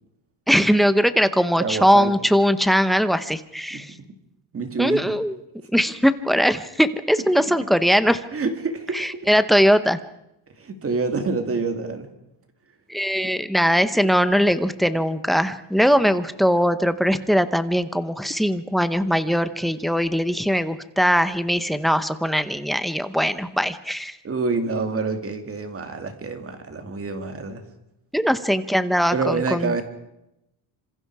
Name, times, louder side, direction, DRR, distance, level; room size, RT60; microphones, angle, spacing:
voice 1, 0.5-3.9 4.8-5.4 5.7-8.2 8.9-10.0 12.9-24.2 28.1-29.8, equal, ahead, 12 dB, 0.8 m, -20 dB
voice 2, 1.6-2.1 3.7-3.8 4.5-5.1 8.3-9.3 10.6-12.1 24.2-27.6 29.1-29.8, right 4 dB, 25° right, 7 dB, 2.5 m, -27 dB
27.0 x 26.5 x 4.8 m, 0.84 s
cardioid pair, 170°, 50 cm